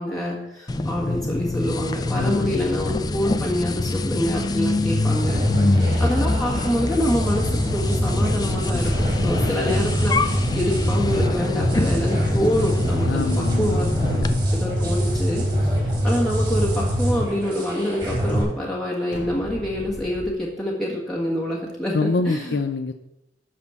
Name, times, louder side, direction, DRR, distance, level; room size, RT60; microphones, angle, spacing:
voice 1, 0.0-5.4 5.7-8.9 9.2-13.9 14.5-22.6, equal, 5° left, -5 dB, 1.6 m, -26 dB
sound 1, 0.7-14.3, left 2 dB, 20° left, 0.4 m, -25 dB
voice 2, 2.2-2.6 5.5-6.0 9.2-9.6 13.0-14.5 21.9-22.9, left 3 dB, 70° left, 8 dB, 0.5 m, -27 dB
sound 2, 3.1-5.6 8.8-16.1 19.1-20.3, left 2 dB, 85° left, 1.0 m, -40 dB
sound 3, 5.1-18.4, equal, 25° right, 3.8 m, -24 dB
12.0 x 4.4 x 7.1 m, 0.91 s
head